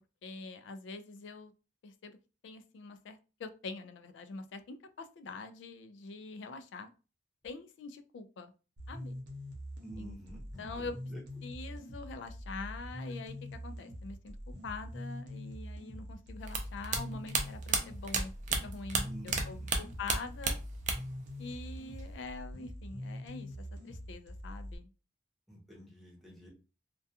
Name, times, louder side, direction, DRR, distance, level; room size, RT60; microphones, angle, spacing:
voice 1, 0.2-1.5 1.8-2.2 2.4-6.9 7.4-8.5 8.9-9.2 10.0-10.1 10.6-10.9 11.4-14.4 14.6-18.3 18.6-20.6 21.4-24.9, left 3 dB, 80° left, 10 dB, 0.3 m, -44 dB
sound 1, 8.8-24.8, equal, 75° right, 0.8 m, -44 dB
voice 2, 9.8-11.2 19.0-19.7 25.5-26.5, right 1 dB, ahead, -4 dB, 0.7 m, -49 dB
sound 2, 16.5-19.4 19.7-21.2 21.5-22.2, right 4 dB, 40° right, 0.4 m, -32 dB
2.3 x 2.2 x 2.7 m, 0.33 s
head